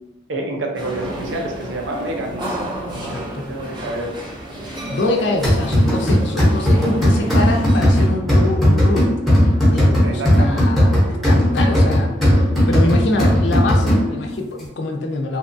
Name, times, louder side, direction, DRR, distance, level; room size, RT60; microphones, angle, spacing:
voice 1, 0.3-2.6 3.0-4.1 10.0-10.6, right 2 dB, 75° right, 2 dB, 0.5 m, -28 dB
sound 1, 0.7-8.1, right 1 dB, 25° right, 0.4 m, -30 dB
voice 2, 2.9-3.5 4.6-9.1 9.4-12.1 12.7-15.4, left 2 dB, 65° left, 2 dB, 0.4 m, -25 dB
sound 2, 5.4-14.3, equal, ahead, 0.7 m, -16 dB
2.8 x 2.3 x 2.6 m, 0.97 s
head